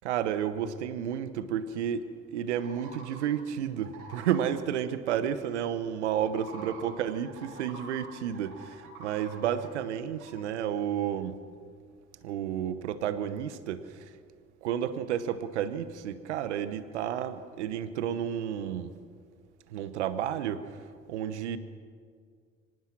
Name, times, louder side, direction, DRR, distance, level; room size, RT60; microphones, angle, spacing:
voice 1, 0.0-11.3 12.2-14.1 14.6-18.9 19.7-20.8 21.1-21.6, right 9 dB, 85° right, 13 dB, 1.0 m, -31 dB
sound 1, 2.5-3.3 3.8-4.5 6.2-8.1 8.3-9.7 10.2-10.3, right 3 dB, 65° right, 6.8 m, -47 dB
25.0 x 18.5 x 6.1 m, 2.1 s
hypercardioid pair, 60°, 34 cm